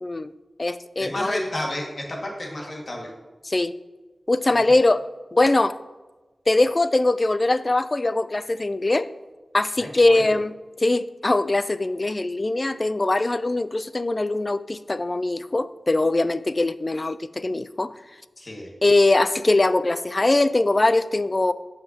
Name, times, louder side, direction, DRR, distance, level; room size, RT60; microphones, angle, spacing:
voice 1, 0.0-0.3 0.6-1.4 3.4-3.7 4.3-5.1 5.3-5.8 6.5-9.1 9.5-17.9 18.8-21.5, left 2 dB, 35° left, 15 dB, 0.3 m, -21 dB
voice 2, 1.0-3.1 4.5-4.8 9.8-10.3 18.4-18.7, left 1 dB, 55° left, -1 dB, 1.9 m, -31 dB
15.0 x 5.7 x 2.9 m, 1.2 s
wide cardioid pair, 75°, 0 cm